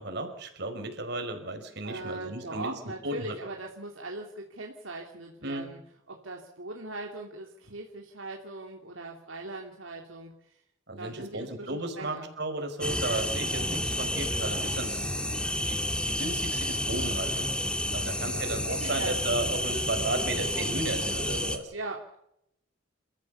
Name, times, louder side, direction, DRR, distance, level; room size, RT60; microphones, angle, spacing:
voice 1, 0.0-3.4 5.4-5.7 10.9-17.5 17.9-21.7, right 2 dB, 55° right, 6 dB, 5.0 m, -34 dB
voice 2, 1.8-5.8 6.1-10.4 11.0-12.3 18.0-18.4 18.7-19.9 20.2-20.3 21.7-22.2, right 2 dB, 80° right, 1 dB, 2.9 m, -40 dB
sound 1, 12.8-21.6, left 1 dB, 5° left, 2.0 m, -30 dB
29.0 x 14.5 x 7.0 m, 0.77 s
head